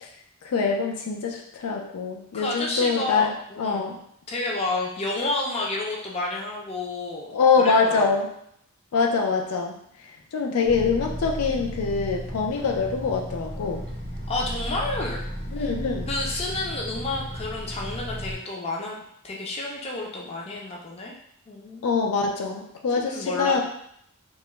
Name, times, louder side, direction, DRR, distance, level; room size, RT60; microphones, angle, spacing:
voice 1, 0.4-4.0 7.3-8.3 8.9-9.8 10.3-13.9 15.5-16.1 21.8-23.6, left 5 dB, 90° left, 1 dB, 0.4 m, -24 dB
voice 2, 2.3-4.0 4.3-7.3 7.6-8.2 14.3-15.2 15.6-15.7 16.1-19.0 19.2-21.2 21.5-22.0 23.0-23.6, left 2 dB, 30° left, -2 dB, 0.4 m, -30 dB
sound 1, 10.7-18.4, equal, 55° left, 0.7 m, -34 dB
2.3 x 2.0 x 3.0 m, 0.71 s
head